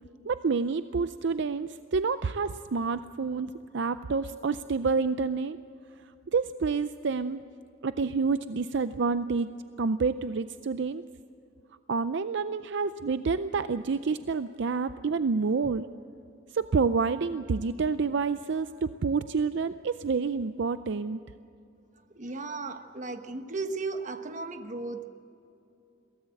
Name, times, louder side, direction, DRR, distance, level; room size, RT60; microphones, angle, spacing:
voice 1, 0.2-5.6 6.3-7.4 7.8-9.5 9.8-11.0 11.9-15.9 16.5-21.2, right 4 dB, 65° right, 12 dB, 0.5 m, -28 dB
voice 2, 22.1-25.1, right 3 dB, 40° right, 7 dB, 1.2 m, -35 dB
22.5 x 17.5 x 7.8 m, 2.8 s
head